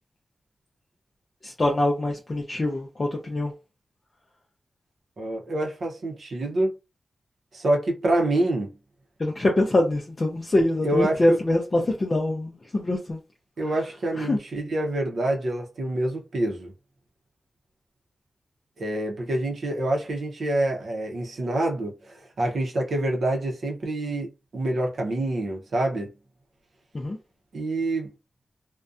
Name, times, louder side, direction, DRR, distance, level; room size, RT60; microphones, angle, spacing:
voice 1, 1.4-3.5 9.2-13.2 14.2-14.4 26.9-27.2, left 1 dB, 35° left, 0.4 m, -24 dB
voice 2, 5.2-6.7 7.5-8.7 10.8-11.4 13.6-16.7 18.8-26.1 27.5-28.1, right 1 dB, 70° right, 0.6 m, -26 dB
2.5 x 2.2 x 2.4 m
wide cardioid pair, 145°, 0 cm